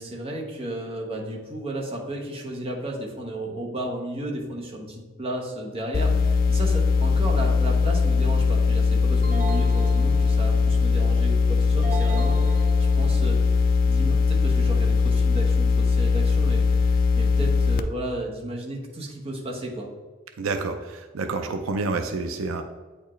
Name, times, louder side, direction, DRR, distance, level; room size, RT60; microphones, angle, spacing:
voice 1, 0.0-19.9, right 1 dB, 30° right, -1 dB, 1.0 m, -34 dB
sound 1, 5.9-17.8, left 5 dB, 45° left, 0.3 m, -20 dB
sound 2, 9.2-10.8 11.8-13.4, right 3 dB, 45° right, 0.7 m, -36 dB
voice 2, 20.4-22.6, right 3 dB, 85° right, 6 dB, 0.5 m, -28 dB
8.6 x 4.4 x 3.1 m, 1.3 s
head